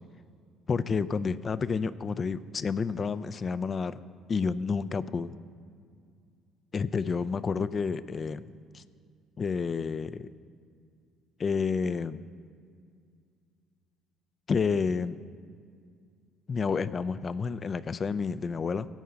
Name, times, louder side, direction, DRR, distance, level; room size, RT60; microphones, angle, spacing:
voice 1, 0.7-4.0 4.3-5.3 6.7-8.5 8.7-8.8 9.4-10.3 11.4-12.2 14.5-15.2 16.5-18.9, left 5 dB, 40° left, 15 dB, 0.5 m, -30 dB
16.5 x 5.6 x 7.6 m, 2.2 s
figure-of-eight pair, 55°, 0 cm